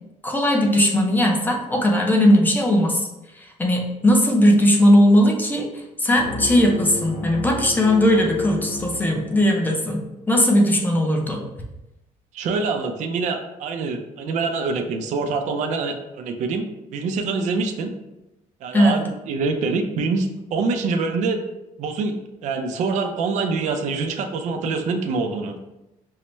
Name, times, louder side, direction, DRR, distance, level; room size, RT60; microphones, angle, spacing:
voice 1, 0.2-3.1 3.4-5.7 6.0-11.4 18.7-19.0, equal, 15° left, 1 dB, 0.5 m, -18 dB
sound 1, 6.2-9.7, left 1 dB, 70° left, 1.0 m, -33 dB
voice 2, 12.3-16.6 16.9-17.9 18.6-21.4 21.8-22.1 22.4-25.5, right 4 dB, 60° right, 5 dB, 0.4 m, -25 dB
5.4 x 2.1 x 3.0 m, 0.94 s
cardioid pair, 170°, 14 cm